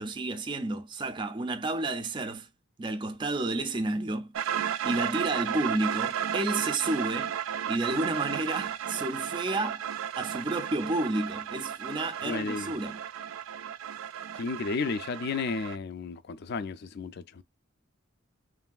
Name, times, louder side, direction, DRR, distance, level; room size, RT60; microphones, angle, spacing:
voice 1, 0.0-2.5 2.8-4.3 4.8-7.3 7.7-9.8 10.2-13.0, right 2 dB, 25° right, 0.4 m, -31 dB
sound 1, 4.3-15.8, right 9 dB, 85° right, 0.4 m, -34 dB
voice 2, 12.2-12.7 14.4-17.4, left 4 dB, 50° left, 0.4 m, -33 dB
3.1 x 2.5 x 2.2 m
head